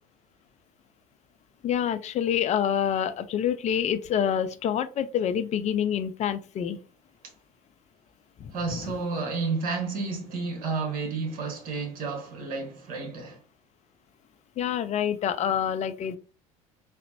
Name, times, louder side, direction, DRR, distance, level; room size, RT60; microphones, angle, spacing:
voice 1, 1.6-6.8 8.4-8.5 14.6-16.2, left 9 dB, 40° left, 0.5 m, -27 dB
voice 2, 8.5-13.4, right 4 dB, 50° right, 1.2 m, -31 dB
3.9 x 2.1 x 2.7 m
hypercardioid pair, 70°, 18 cm